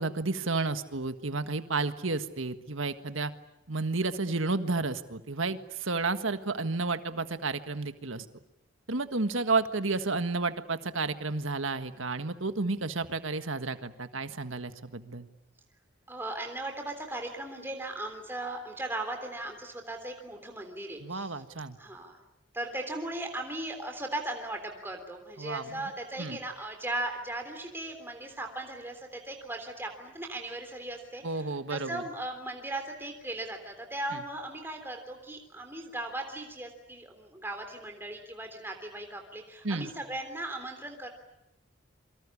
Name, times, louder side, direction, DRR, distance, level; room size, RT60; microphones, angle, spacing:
voice 1, 0.0-3.3 3.7-8.3 8.9-15.3 21.0-21.8 25.4-25.9 26.2-26.4 31.2-32.0 34.1-34.2 39.6-39.9, right 3 dB, 75° right, 10 dB, 1.6 m, -31 dB
voice 2, 16.1-21.4 21.8-22.2 22.5-41.1, right 1 dB, 10° right, 3 dB, 3.5 m, -38 dB
28.0 x 24.5 x 8.5 m, 0.85 s
head